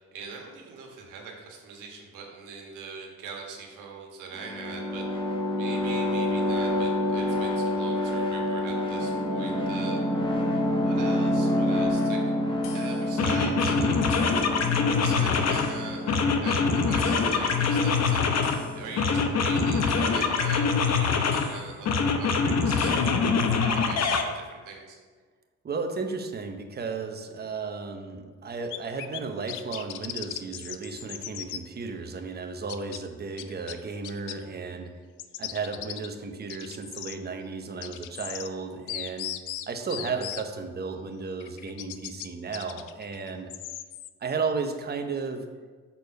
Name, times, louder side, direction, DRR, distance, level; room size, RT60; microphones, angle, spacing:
voice 1, 0.0-10.0 10.3-14.2 15.0-25.0, right 5 dB, 90° right, 0 dB, 1.5 m, -42 dB
sound 1, 4.3-19.8, left 1 dB, 15° left, 1.1 m, -28 dB
sound 2, 12.6-12.8 13.2-15.7 16.1-18.6 19.0-21.5 21.9-24.2, left 5 dB, 60° left, 0.8 m, -24 dB
voice 2, 25.6-34.9 35.4-39.3 39.7-43.5 44.2-45.4, right 4 dB, 35° right, 5 dB, 0.8 m, -34 dB
sound 3, 28.7-29.2 29.5-31.6 32.7-33.0 33.4-34.4 35.2-36.1 36.5-37.2 37.8-38.5 38.9-40.4 41.4-42.3 42.5-44.1, left 12 dB, 85° left, 0.5 m, -37 dB
6.9 x 4.2 x 5.2 m, 1.5 s
cardioid pair, 90°, 30 cm